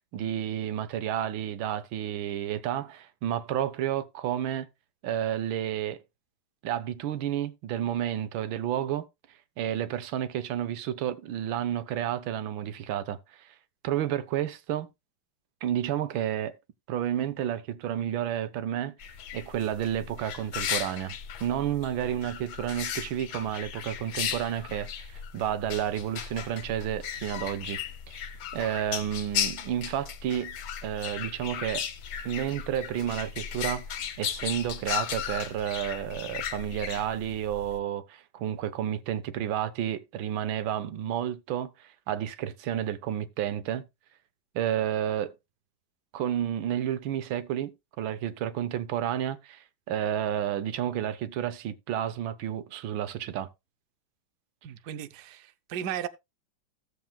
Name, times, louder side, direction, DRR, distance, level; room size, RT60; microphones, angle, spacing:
voice 1, 0.1-4.7 5.0-6.0 6.6-9.1 9.6-13.5 13.8-14.9 15.6-16.6 16.9-18.9 19.3-21.1 21.4-27.8 28.1-28.2 28.5-30.6 30.8-31.9 32.2-43.9 44.5-45.3 46.1-53.5, right 10 dB, 90° right, 1.5 m, -31 dB
sound 1, 19.0-37.8, left 8 dB, 85° left, 1.7 m, -36 dB
voice 2, 54.6-56.1, right 10 dB, 65° right, 1.2 m, -36 dB
16.5 x 7.3 x 2.3 m
omnidirectional pair, 2.1 m